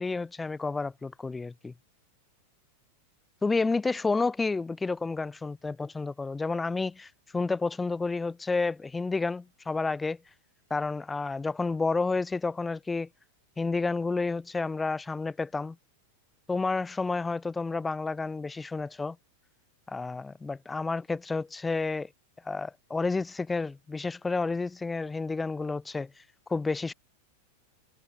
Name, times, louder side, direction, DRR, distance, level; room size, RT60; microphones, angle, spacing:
voice 1, 0.0-1.7 3.4-10.2 10.7-13.1 13.6-15.8 16.5-19.2 19.9-22.1 22.4-26.1 26.5-26.9, left 3 dB, 10° left, 3.9 m, -30 dB
figure-of-eight pair, 90°, 0 cm